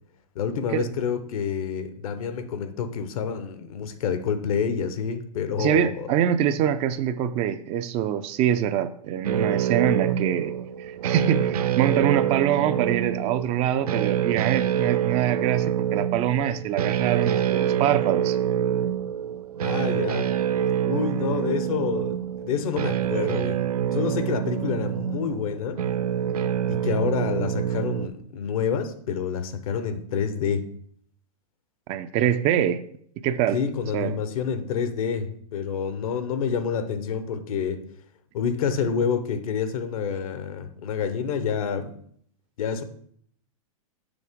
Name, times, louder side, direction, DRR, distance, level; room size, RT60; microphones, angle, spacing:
voice 1, 0.3-6.1 19.6-20.3 20.8-23.6 23.9-25.8 26.7-30.7 33.5-37.8 38.3-42.0 42.6-42.8, left 6 dB, 70° left, 0.9 m, -28 dB
voice 2, 5.6-10.5 10.8-18.4 31.9-32.8 33.2-33.6 33.9-34.2, right 10 dB, 35° right, 0.4 m, -24 dB
sound 1, 9.2-28.1, right 9 dB, 85° right, 0.5 m, -26 dB
6.9 x 5.7 x 3.6 m
hypercardioid pair, 120°, 19 cm